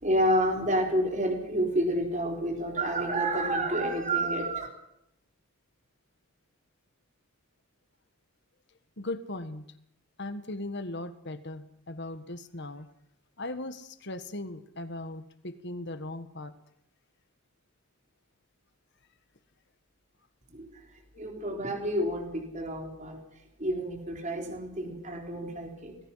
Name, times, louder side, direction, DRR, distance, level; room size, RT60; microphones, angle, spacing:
voice 1, 0.0-4.7 20.5-20.7 21.2-23.2 23.6-26.0, right 1 dB, 35° right, 3.9 m, -29 dB
voice 2, 9.0-9.7 10.2-12.9 13.4-16.5 21.1-21.2, left 2 dB, 55° left, 1.6 m, -38 dB
25.5 x 19.5 x 5.8 m
head